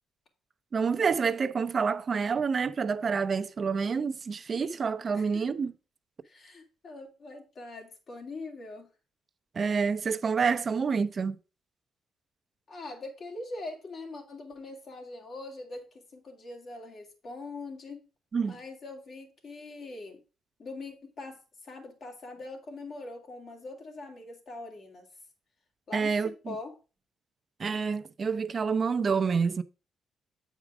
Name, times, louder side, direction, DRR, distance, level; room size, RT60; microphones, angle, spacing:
voice 1, 0.7-5.7 9.5-11.4 18.3-18.6 25.9-26.5 27.6-29.6, right 5 dB, 40° right, 0.5 m, -28 dB
voice 2, 5.1-5.5 6.2-8.9 12.7-18.0 18.5-20.2 20.6-25.1 25.9-26.7, left 2 dB, 55° left, 2.4 m, -42 dB
8.2 x 4.9 x 4.8 m
cardioid pair, 90°, 0 cm